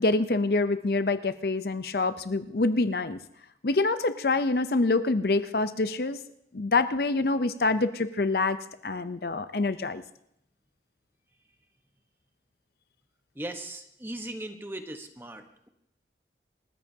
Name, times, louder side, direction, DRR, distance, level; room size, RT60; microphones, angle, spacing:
voice 1, 0.0-3.2 3.6-6.2 6.5-8.6 8.8-10.0, left 3 dB, 55° left, 12 dB, 0.6 m, -26 dB
voice 2, 13.3-15.7, right 1 dB, 10° right, 6 dB, 1.1 m, -38 dB
28.5 x 14.5 x 2.8 m, 0.77 s
head